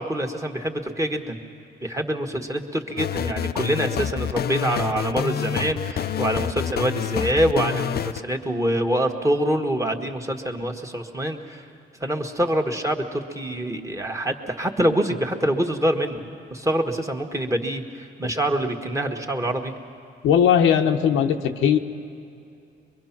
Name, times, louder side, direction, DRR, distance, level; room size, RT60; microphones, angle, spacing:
voice 1, 0.0-1.4 1.8-11.6 12.0-16.2 16.5-17.8 18.2-19.7, right 1 dB, 15° right, 3 dB, 1.6 m, -25 dB
sound 1, 3.0-8.2, left 9 dB, 55° left, 0.6 m, -27 dB
voice 2, 20.2-21.8, left 8 dB, 90° left, 5 dB, 1.0 m, -18 dB
23.0 x 23.0 x 6.0 m, 2.6 s
cardioid pair, 90°, 20 cm